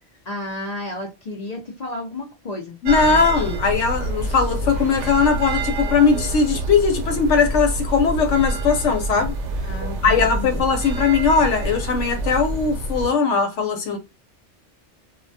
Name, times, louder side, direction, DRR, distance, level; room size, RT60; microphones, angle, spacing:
voice 1, 0.3-3.2 9.6-10.6, left 2 dB, 60° left, 0.4 m, -32 dB
voice 2, 2.8-9.3 10.0-14.0, left 5 dB, 85° left, 0.9 m, -19 dB
sound 1, 2.8-13.1, right 2 dB, 75° right, 0.9 m, -27 dB
2.2 x 2.1 x 2.6 m
omnidirectional pair, 1.2 m